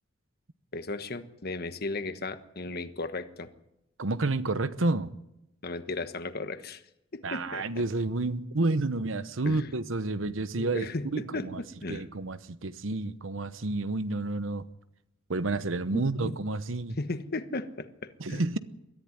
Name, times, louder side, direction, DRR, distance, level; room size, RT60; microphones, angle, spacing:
voice 1, 0.7-3.5 5.6-6.8 7.1-7.8 9.4-9.7 10.6-12.0 15.9-16.4 17.0-17.9 18.3-18.4, left 2 dB, 50° left, 1.3 m, -35 dB
voice 2, 4.0-5.1 7.2-10.9 11.1-11.6 11.9-14.6 15.3-17.0 18.2-18.6, right 2 dB, 70° right, 1.0 m, -30 dB
22.0 x 14.0 x 9.9 m
head